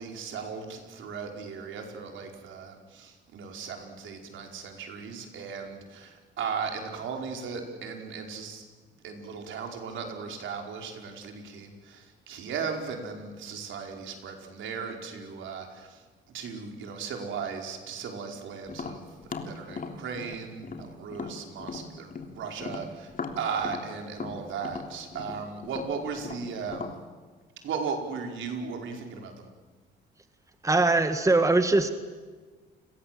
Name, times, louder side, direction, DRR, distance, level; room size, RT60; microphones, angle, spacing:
voice 1, 0.0-8.6 9.0-27.0 27.6-29.5, right 5 dB, 75° right, 3 dB, 5.0 m, -37 dB
Tap, 18.7-22.3 22.6-27.0, left 5 dB, 45° left, 3.3 m, -38 dB
voice 2, 30.6-31.9, right 2 dB, 15° right, 8 dB, 1.8 m, -21 dB
30.0 x 22.5 x 7.7 m, 1.4 s
cardioid pair, 90°, 20 cm